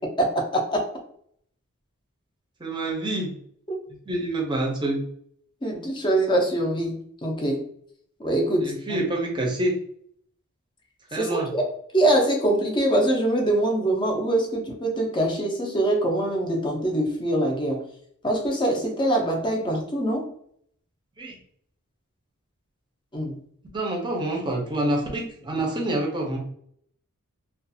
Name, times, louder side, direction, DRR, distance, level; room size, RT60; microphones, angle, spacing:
voice 1, 0.2-0.9 3.7-3.8 5.6-7.6 8.2-9.0 11.1-11.7 11.9-17.8 18.2-20.3 23.1-23.4, right 1 dB, 20° left, 1 dB, 0.5 m, -24 dB
voice 2, 2.6-3.4 4.1-5.0 8.6-9.8 11.1-11.5 21.2-21.4 23.7-26.4, right 1 dB, 20° right, -1 dB, 0.6 m, -27 dB
2.4 x 2.3 x 2.6 m, 0.66 s
head